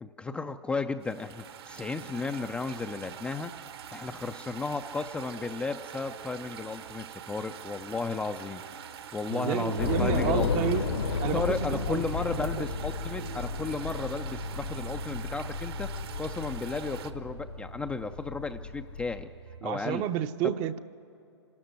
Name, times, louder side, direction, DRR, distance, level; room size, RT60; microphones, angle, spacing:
voice 1, 0.0-8.6 9.1-10.7 11.3-19.3 19.6-20.0, left 4 dB, 5° left, 6 dB, 0.4 m, -34 dB
sound 1, 1.0-17.1, right 9 dB, 65° right, 1.3 m, -44 dB
sound 2, 4.9-19.6, right 4 dB, 80° right, 2.3 m, -40 dB
voice 2, 9.4-10.8 11.2-12.0 12.4-12.7 19.6-20.8, right 11 dB, 30° right, 11 dB, 0.7 m, -31 dB
Train / Subway metro underground, 9.8-19.2, left 6 dB, 70° left, 1.3 m, -34 dB
26.0 x 13.0 x 9.3 m, 2.9 s
hypercardioid pair, 125°, 14 cm